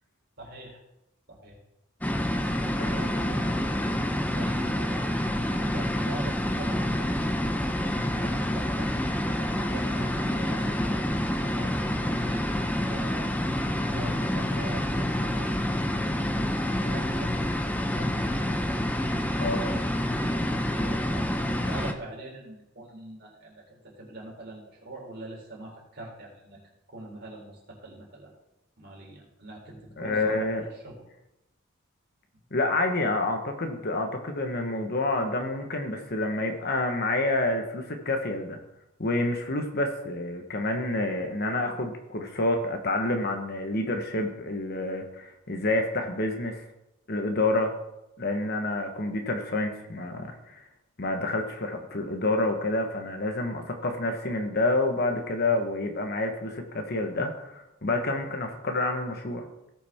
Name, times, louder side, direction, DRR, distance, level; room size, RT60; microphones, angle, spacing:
voice 1, 0.4-0.8 1.3-1.6 2.8-4.0 4.4-9.0 9.3-13.3 13.7-15.6 16.0-16.3 16.8-17.3 18.0-18.6 20.4-26.6 26.9-28.3 28.8-31.0, right 1 dB, 50° right, -3 dB, 3.6 m, -43 dB
sound 1, 2.0-21.9, left 1 dB, 5° left, 0.6 m, -28 dB
voice 2, 2.8-3.4 19.4-19.7 30.0-30.6 32.5-38.6 39.0-46.6 47.1-47.7 48.2-50.6 51.0-59.4, left 2 dB, 45° left, 5 dB, 1.2 m, -28 dB
17.5 x 6.0 x 3.6 m, 0.90 s
head